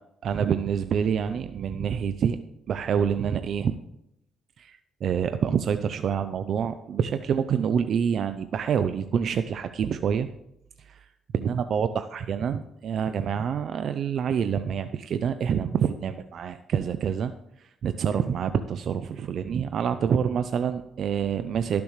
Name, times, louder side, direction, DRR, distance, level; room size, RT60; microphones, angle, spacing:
voice 1, 0.2-2.4 2.7-3.7 4.6-10.3 10.8-11.1 11.3-17.3 17.6-21.8, right 7 dB, 65° right, 10 dB, 0.5 m, -27 dB
18.0 x 6.9 x 3.2 m, 0.81 s
cardioid pair, 90°, 0 cm